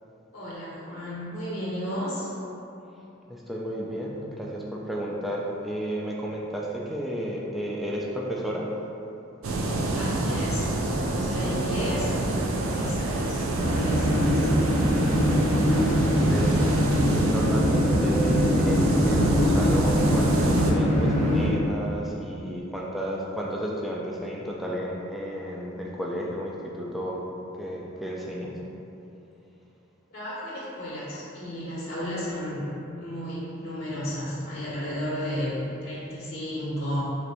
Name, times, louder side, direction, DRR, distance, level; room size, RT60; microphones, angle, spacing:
voice 1, 0.3-2.3 9.9-14.5 30.1-37.0, equal, 50° left, -8 dB, 0.7 m, -33 dB
voice 2, 3.3-8.7 15.7-27.2 27.6-28.5, equal, ahead, -4 dB, 0.3 m, -32 dB
sound 1, 9.4-20.7, right 2 dB, 90° right, 0.4 m, -28 dB
sound 2, 13.6-21.5, equal, 20° right, 1.0 m, -22 dB
3.0 x 2.6 x 4.3 m, 2.8 s
head